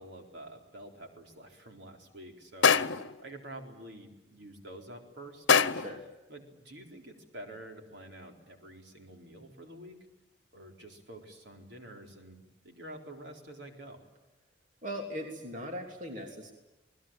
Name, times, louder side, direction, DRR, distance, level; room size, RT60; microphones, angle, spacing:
voice 1, 0.0-2.8 3.2-5.5 6.3-10.0 10.5-14.1, right 1 dB, 65° right, 3 dB, 4.2 m, -48 dB
sound 1, 2.6-3.2 5.5-6.0, left 6 dB, 85° left, 1.0 m, -24 dB
voice 2, 5.7-6.0 14.8-16.5, equal, 40° right, 2 dB, 3.3 m, -39 dB
27.5 x 20.0 x 9.0 m, 1.1 s
head